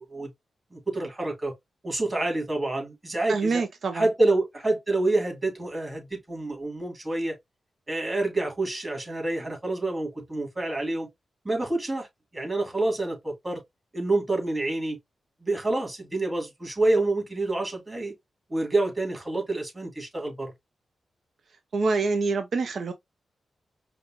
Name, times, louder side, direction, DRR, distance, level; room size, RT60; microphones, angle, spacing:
voice 1, 0.7-1.5 1.8-3.6 3.9-7.3 7.9-11.1 11.4-12.1 12.3-13.6 13.9-15.0 15.4-18.1 18.5-20.5, right 2 dB, 25° right, 2.6 m, -27 dB
voice 2, 3.3-4.1 21.7-22.9, right 4 dB, 65° right, 0.6 m, -26 dB
5.1 x 2.4 x 3.0 m
cardioid pair, 70°, 0 cm